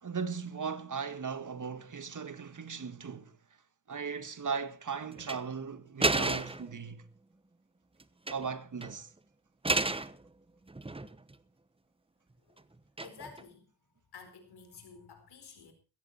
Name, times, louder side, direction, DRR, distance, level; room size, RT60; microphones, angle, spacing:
voice 1, 0.0-3.3 3.9-7.0 8.3-9.1, right 6 dB, 50° right, 1.9 m, -37 dB
sound 1, 5.2-5.4 6.0-6.7 8.0-8.5 8.8-8.9 9.6-10.1 10.7-11.3 13.0-13.4, right 2 dB, 15° right, 1.1 m, -31 dB
voice 2, 13.0-13.7 14.1-15.7, left 5 dB, 80° left, 4.5 m, -51 dB
16.5 x 14.0 x 4.4 m
cardioid pair, 55°, 38 cm